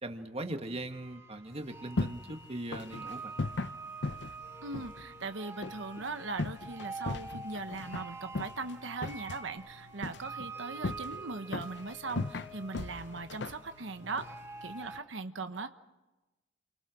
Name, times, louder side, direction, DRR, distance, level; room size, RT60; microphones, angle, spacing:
voice 1, 0.0-3.3, right 1 dB, 30° right, 6 dB, 1.6 m, -40 dB
sound 1, 0.9-15.0, right 3 dB, 15° right, 2.6 m, -46 dB
sound 2, 1.5-15.0, left 3 dB, 65° left, 0.7 m, -40 dB
voice 2, 4.6-14.3 14.6-15.7, right 3 dB, 80° right, 8 dB, 1.2 m, -39 dB
29.5 x 23.5 x 6.3 m, 1.1 s
head